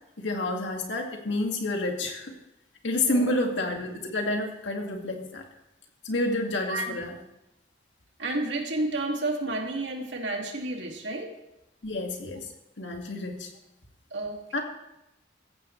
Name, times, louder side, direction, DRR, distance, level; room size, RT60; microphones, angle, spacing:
voice 1, 0.2-2.3 2.8-5.4 6.0-7.2 11.8-12.5 12.8-13.5 14.5-14.6, left 2 dB, 90° left, 2 dB, 2.2 m, -29 dB
voice 2, 8.2-11.3 14.1-14.6, right 2 dB, 85° right, 1 dB, 2.4 m, -31 dB
17.0 x 15.0 x 3.3 m, 0.90 s
head